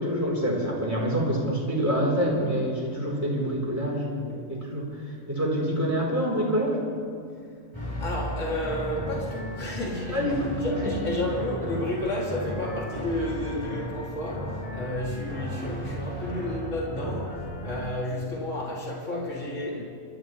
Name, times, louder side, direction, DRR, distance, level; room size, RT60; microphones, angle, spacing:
voice 1, 0.0-4.9 5.3-6.8 10.1-10.6, equal, 10° right, -4 dB, 3.4 m, -26 dB
sound 1, 7.7-17.9, equal, 20° left, 4.1 m, -34 dB
voice 2, 8.0-19.8, left 1 dB, 65° left, -4 dB, 2.9 m, -31 dB
27.5 x 13.0 x 3.1 m, 2.4 s
omnidirectional pair, 1.4 m